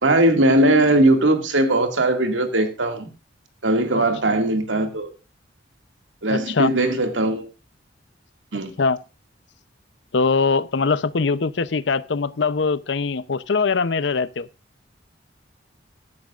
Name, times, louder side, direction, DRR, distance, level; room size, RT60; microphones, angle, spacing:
voice 1, 0.0-3.1 3.6-5.1 6.2-7.5 8.5-8.7, right 1 dB, 80° right, 2.1 m, -19 dB
voice 2, 6.3-6.7 8.8-9.0 10.1-14.5, left 4 dB, 65° left, 0.6 m, -22 dB
14.5 x 12.0 x 2.5 m
head